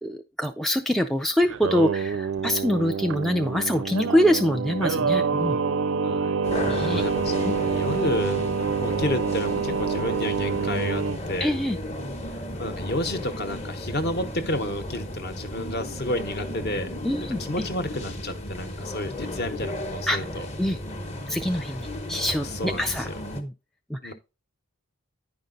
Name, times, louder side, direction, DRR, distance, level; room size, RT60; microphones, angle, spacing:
voice 1, 0.0-5.6 6.7-7.0 7.4-7.5 11.4-11.8 17.0-17.7 20.1-20.2 20.6-20.8 21.3-23.1 23.3-23.5 23.9-24.1, equal, ahead, 0.3 m, -25 dB
Singing, 1.4-11.2, right 5 dB, 60° right, 0.5 m, -27 dB
voice 2, 6.0-8.5 8.8-11.5 12.6-16.9 17.4-20.5 22.6-22.9 24.0-24.1, left 1 dB, 45° left, 1.0 m, -31 dB
sound 1, 6.4-23.4, left 1 dB, 30° left, 0.9 m, -34 dB
9.9 x 5.2 x 3.9 m
head